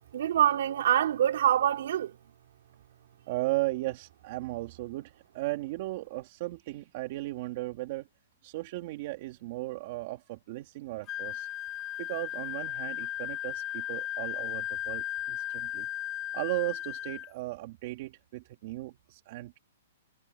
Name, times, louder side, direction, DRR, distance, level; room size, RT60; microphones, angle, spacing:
voice 1, 0.1-2.2, right 11 dB, 55° right, 3.8 m, -25 dB
voice 2, 3.3-8.1 8.4-11.5 12.0-15.9 16.3-19.6, right 19 dB, 35° right, 2.5 m, -36 dB
Wind instrument woodwind instrument, 11.1-17.3, left 12 dB, 20° left, 2.0 m, -36 dB
hypercardioid pair, 170°, 0 cm